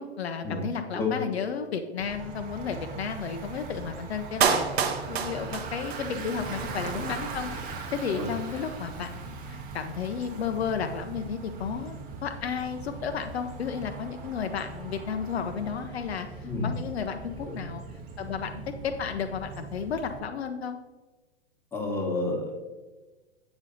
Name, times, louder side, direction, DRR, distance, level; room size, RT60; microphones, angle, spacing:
voice 1, 0.0-17.8 18.2-20.8, left 6 dB, 65° left, 7 dB, 0.7 m, -33 dB
Bicycle, 2.0-20.2, right 4 dB, 25° right, 0.8 m, -40 dB
Clapping, 4.4-6.4 6.7-6.8, right 6 dB, 65° right, 0.9 m, -27 dB
voice 2, 21.7-22.6, left 3 dB, 5° left, -1 dB, 1.3 m, -30 dB
8.1 x 5.1 x 3.9 m, 1.2 s
figure-of-eight pair, 110°, 34 cm